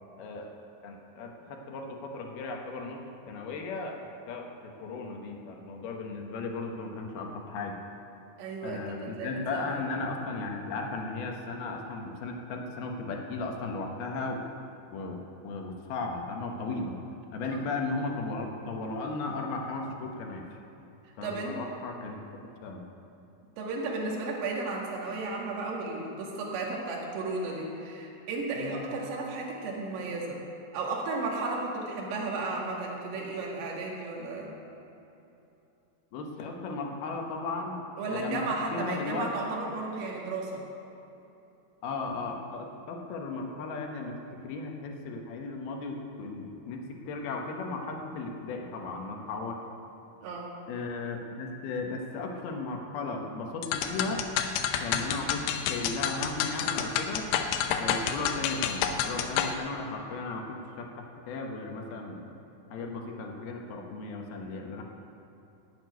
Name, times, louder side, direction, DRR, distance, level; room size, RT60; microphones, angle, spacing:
voice 1, 0.2-0.5 0.8-4.0 4.3-7.8 8.6-14.4 14.9-15.2 15.4-16.9 17.3-20.4 21.2-22.2 22.6-22.8 28.6-28.9 36.1-37.8 38.1-38.4 38.7-39.3 41.8-49.6 50.7-54.3 54.8-57.3 57.8-62.2 62.7-64.8, left 3 dB, 70° left, 1 dB, 2.6 m, -36 dB
voice 2, 8.4-9.9 17.4-17.6 21.2-21.6 23.6-30.4 30.7-34.5 38.0-40.6 50.2-50.5, right 3 dB, 80° right, -2 dB, 4.5 m, -34 dB
sound 1, 53.6-59.5, left 8 dB, 90° left, 3.5 m, -29 dB
12.5 x 9.0 x 9.3 m, 2.9 s
omnidirectional pair, 5.8 m